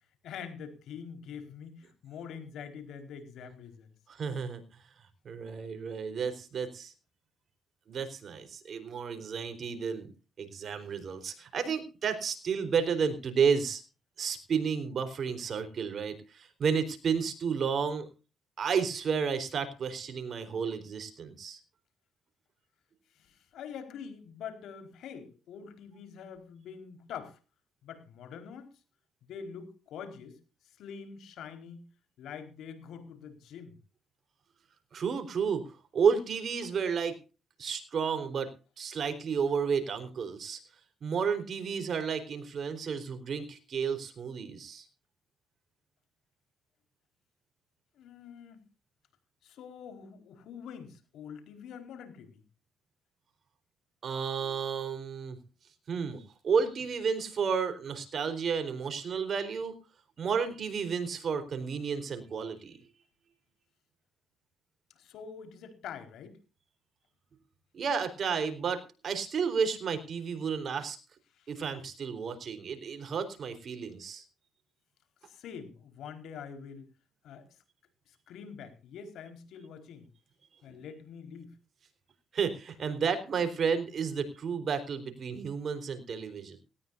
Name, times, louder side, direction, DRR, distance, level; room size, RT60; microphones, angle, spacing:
voice 1, 0.2-3.9 23.1-27.4 27.8-28.7 29.2-30.4 30.6-31.8 32.2-33.7 48.0-48.6 49.4-52.4 64.9-66.4 71.3-71.5 75.2-76.8 77.2-77.6 78.1-80.1 80.6-81.5, left 7 dB, 80° left, 8 dB, 4.5 m, -45 dB
voice 2, 4.1-4.6 5.2-6.9 7.9-10.1 10.4-13.8 14.2-18.1 18.6-21.6 34.9-35.6 35.9-37.1 37.6-38.5 38.8-40.6 41.0-44.8 54.0-55.4 55.9-59.8 60.2-62.8 67.7-71.0 71.5-74.2 82.3-86.6, right 6 dB, 55° right, 9 dB, 4.2 m, -31 dB
18.5 x 18.0 x 2.6 m, 0.34 s
cardioid pair, 90°, 0 cm